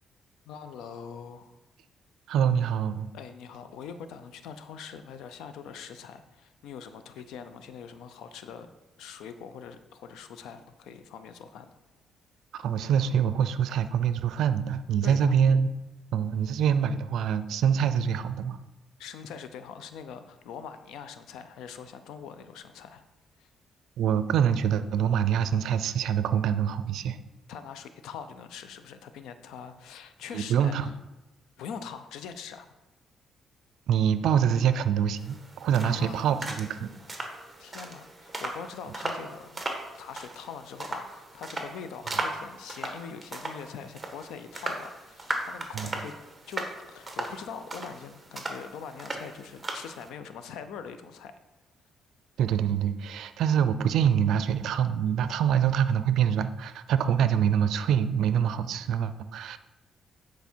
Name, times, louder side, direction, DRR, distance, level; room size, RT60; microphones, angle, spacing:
voice 1, 0.5-1.5 3.1-8.7 9.0-11.7 15.0-15.3 19.0-23.0 23.4-23.5 27.5-30.9 31.6-32.7 35.8-36.5 37.6-39.6 39.9-46.1 46.5-51.3, left 7 dB, 85° left, 10 dB, 0.6 m, -43 dB
voice 2, 2.3-3.1 12.5-15.7 16.1-18.6 24.0-27.2 30.3-30.9 33.9-36.9 45.7-45.9 52.4-59.6, right 8 dB, 80° right, 12 dB, 0.5 m, -25 dB
sound 1, 35.2-50.1, right 2 dB, 15° right, 1.5 m, -37 dB
9.5 x 4.6 x 4.5 m, 1.1 s
cardioid pair, 90°, 0 cm